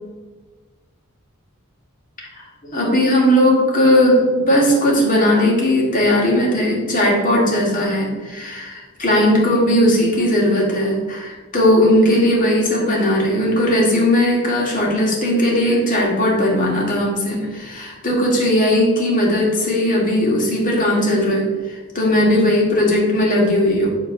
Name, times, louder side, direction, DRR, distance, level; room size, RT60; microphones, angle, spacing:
voice 1, 2.6-23.9, left 1 dB, 40° left, -2 dB, 2.1 m, -17 dB
8.2 x 3.7 x 6.1 m, 1.3 s
head